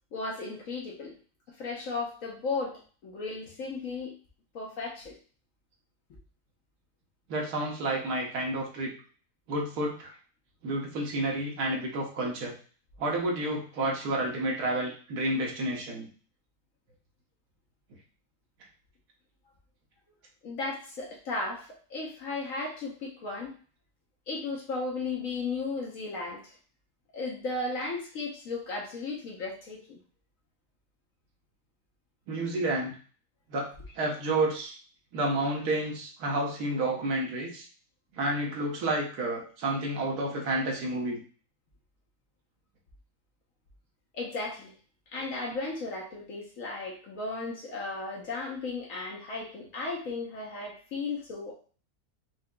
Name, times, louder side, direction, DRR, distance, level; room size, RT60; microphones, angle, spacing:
voice 1, 0.1-1.1 1.6-4.1 4.5-5.1 20.4-23.5 24.3-26.5 27.1-30.0 44.1-44.7 45.1-51.5, left 3 dB, 60° left, -2 dB, 1.1 m, -35 dB
voice 2, 7.3-8.9 9.5-10.1 10.6-12.5 13.0-16.1 32.3-32.9 33.5-33.7 34.0-34.7 35.1-37.7 38.1-41.2, right 2 dB, 70° right, -1 dB, 1.5 m, -30 dB
4.9 x 2.7 x 2.2 m, 0.40 s
omnidirectional pair, 1.8 m